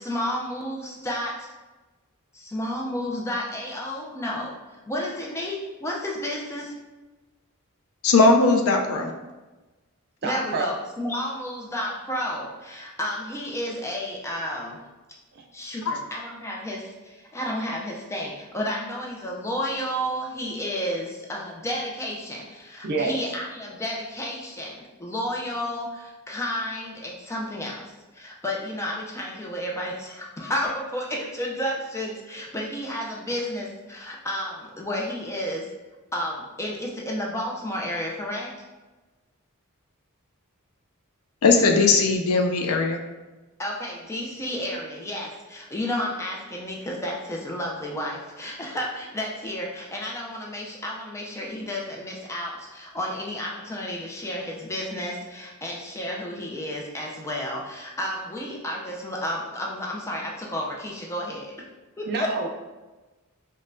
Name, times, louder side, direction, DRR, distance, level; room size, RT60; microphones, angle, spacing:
voice 1, 0.0-1.5 2.3-4.6 4.9-6.7 10.2-14.8 15.5-35.7 36.1-38.6 43.6-61.7 62.0-62.3, equal, 15° left, -1 dB, 0.4 m, -31 dB
voice 2, 8.0-9.1 41.4-43.0, left 3 dB, 70° left, 3 dB, 0.4 m, -19 dB
voice 3, 10.2-10.7 15.3-15.4 22.8-23.1 62.1-62.5, right 3 dB, 50° right, 1 dB, 0.5 m, -27 dB
5.2 x 2.2 x 2.5 m, 1.2 s
head